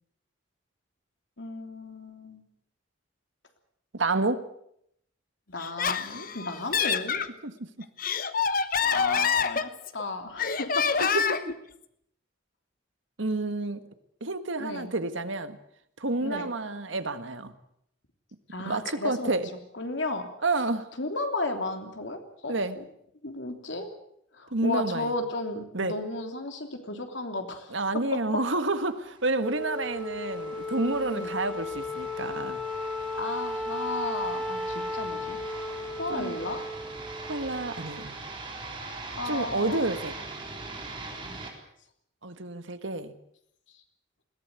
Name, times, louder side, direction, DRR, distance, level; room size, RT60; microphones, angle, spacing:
voice 1, 1.4-2.4 5.5-7.2 8.8-10.9 14.6-14.9 16.2-16.5 18.5-19.3 19.7-20.3 21.0-22.8 23.2-23.9 24.3-27.7 28.1-28.2 31.1-31.3 33.2-35.4 35.9-36.6 39.1-39.9 41.2-41.4, left 2 dB, 70° left, 5 dB, 3.3 m, -34 dB
voice 2, 3.9-4.4 7.4-7.5 11.0-11.5 13.2-13.9 14.2-15.6 16.0-17.5 18.6-19.5 20.4-20.9 22.5-22.8 24.5-25.1 25.7-25.9 27.7-32.6 36.1-36.3 37.2-38.2 39.3-40.1 42.2-43.1, right 2 dB, 75° right, 10 dB, 1.7 m, -29 dB
Laughter, 5.6-7.3 7.8-10.0 10.4-11.5, left 6 dB, 45° left, 1.1 m, -27 dB
sound 1, 29.0-41.5, right 3 dB, 25° right, 4.1 m, -42 dB
Wind instrument woodwind instrument, 29.4-38.0, left 2 dB, ahead, 3.0 m, -35 dB
21.0 x 17.0 x 8.4 m, 0.73 s
head